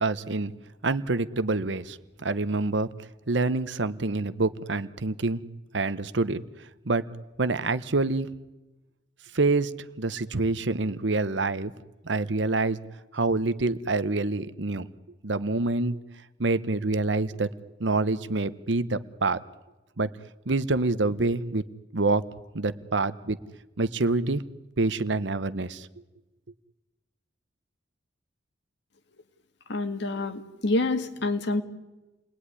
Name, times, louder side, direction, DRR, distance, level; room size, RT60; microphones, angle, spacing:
voice 1, 0.0-0.5 0.8-2.9 3.3-5.4 5.7-6.4 6.9-7.0 7.4-8.3 9.3-11.7 12.0-12.8 13.1-14.9 15.2-16.0 16.4-17.5 17.8-19.4 20.0-20.1 20.5-21.6 21.9-22.3 22.5-23.4 23.8-24.4 24.8-25.9, right 3 dB, 70° right, 14 dB, 1.0 m, -26 dB
voice 2, 29.7-31.6, left 2 dB, 65° left, 8 dB, 2.0 m, -27 dB
29.5 x 20.0 x 9.9 m, 1.1 s
head